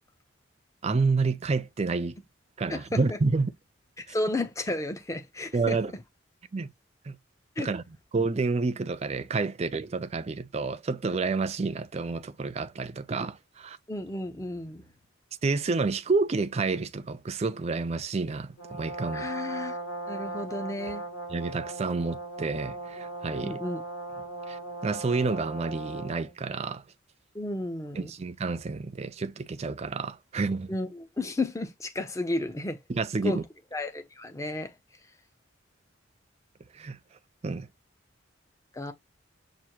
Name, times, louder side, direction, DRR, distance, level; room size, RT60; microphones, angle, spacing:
voice 1, 0.8-2.2 2.6-3.5 5.5-5.9 6.5-6.7 7.1-7.2 7.6-7.8 8.1-13.8 15.4-19.3 21.3-23.6 24.5-26.8 28.0-30.8 32.9-33.4 36.7-37.0 37.4-37.7, right 4 dB, 30° right, 0.4 m, -29 dB
voice 2, 2.7-3.2 4.1-5.8 7.6-7.7 13.9-14.8 19.1-19.8 20.1-21.0 23.4-23.8 27.3-28.1 30.7-32.8 33.2-33.4 33.7-34.7 38.7-38.9, left 2 dB, 15° left, 0.6 m, -32 dB
Brass instrument, 18.6-26.3, right 2 dB, 65° left, 1.9 m, -38 dB
6.1 x 2.6 x 2.9 m
head